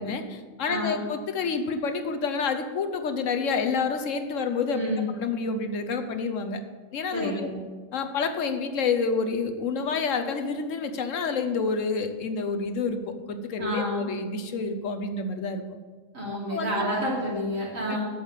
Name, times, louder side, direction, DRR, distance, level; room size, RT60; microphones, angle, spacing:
voice 1, 0.0-4.9 5.2-6.6 6.9-7.5 7.9-15.6 16.5-16.9, left 4 dB, 70° left, 7 dB, 1.1 m, -28 dB
voice 2, 0.7-1.0 4.7-5.1 7.1-7.5 13.6-14.1 16.1-18.0, equal, 70° right, -5 dB, 3.3 m, -29 dB
8.3 x 7.2 x 7.3 m, 1.5 s
omnidirectional pair, 1.4 m